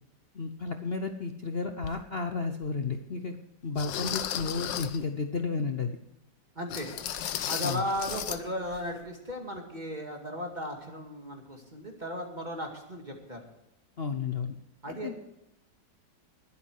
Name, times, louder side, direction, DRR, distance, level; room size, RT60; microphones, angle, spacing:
voice 1, 0.3-3.4 3.6-6.0 7.6-7.8 14.0-14.6 14.9-15.1, left 4 dB, 45° left, 6 dB, 0.8 m, -32 dB
sound 1, 1.8-2.0 2.6-2.7 3.8-5.0 6.7-8.4 8.7-8.9 9.3-9.4, left 10 dB, 90° left, 1.5 m, -34 dB
voice 2, 6.6-6.9 7.5-13.4 14.8-15.1, equal, 25° right, 2 dB, 2.2 m, -36 dB
20.5 x 8.5 x 4.8 m, 0.87 s
omnidirectional pair, 1.9 m